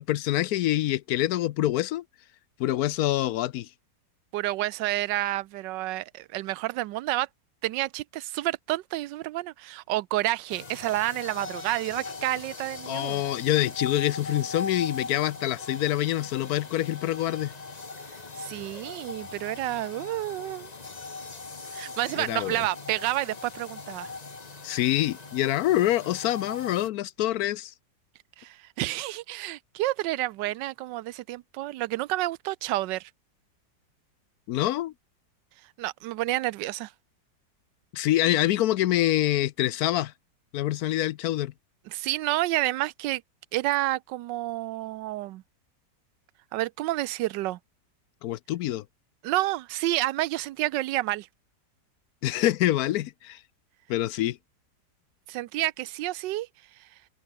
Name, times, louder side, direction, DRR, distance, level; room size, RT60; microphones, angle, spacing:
voice 1, 0.0-2.0 2.6-3.7 12.9-17.5 22.2-22.6 24.6-27.7 34.5-34.9 37.9-40.1 40.5-41.5 48.2-48.8 52.2-53.4 53.9-54.4, left 14 dB, 70° left, 0.9 m, -26 dB
voice 2, 4.3-7.3 7.6-13.2 18.4-20.7 21.7-24.1 28.4-33.1 35.8-36.9 41.9-43.2 43.5-45.4 46.5-47.6 49.2-51.3 55.3-56.5, right 16 dB, 80° right, 1.3 m, -29 dB
sound 1, 10.5-26.9, left 4 dB, 25° left, 1.3 m, -40 dB
omnidirectional pair, 1.9 m